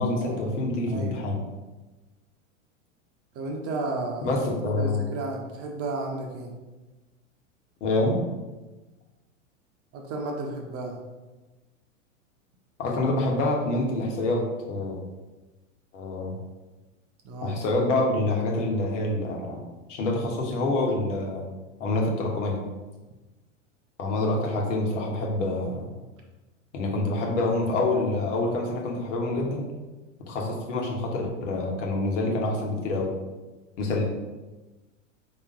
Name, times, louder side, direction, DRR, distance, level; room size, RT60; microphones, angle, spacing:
voice 1, 0.0-1.3 4.2-5.0 7.8-8.2 12.8-15.0 15.9-16.3 17.4-19.6 19.9-21.4 21.8-22.6 24.0-25.9 26.7-29.7 30.3-33.1 33.8-34.0, left 2 dB, 65° left, -1 dB, 1.4 m, -26 dB
voice 2, 0.9-1.2 3.3-4.4 4.6-6.5 9.9-11.0 17.2-17.6, right 2 dB, 35° right, 1 dB, 0.9 m, -33 dB
4.2 x 3.1 x 3.7 m, 1.1 s
hypercardioid pair, 105°, 40 cm